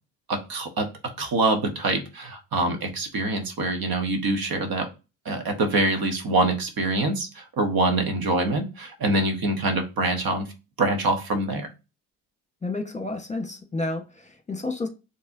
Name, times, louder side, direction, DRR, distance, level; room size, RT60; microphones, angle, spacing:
voice 1, 0.3-4.9 5.2-10.5 10.8-11.7, right 2 dB, 60° right, 1.3 m, -25 dB
voice 2, 12.6-14.9, left 2 dB, 15° left, 1.2 m, -30 dB
5.4 x 3.3 x 2.7 m
supercardioid pair, 55°, 40 cm